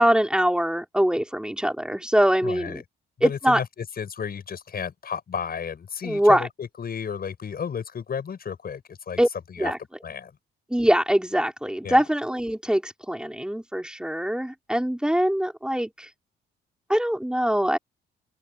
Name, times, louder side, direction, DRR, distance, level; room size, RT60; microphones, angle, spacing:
voice 1, 0.0-2.8 3.2-3.6 6.0-6.5 9.2-9.3 9.6-9.8 10.7-16.1 16.9-17.8, equal, 5° right, 4.0 m, -23 dB
voice 2, 2.4-2.8 3.2-9.2 9.5-9.7 10.0-10.3 11.8-12.0, left 7 dB, 50° left, 7.4 m, -33 dB
open air
cardioid pair, 90°, 20 cm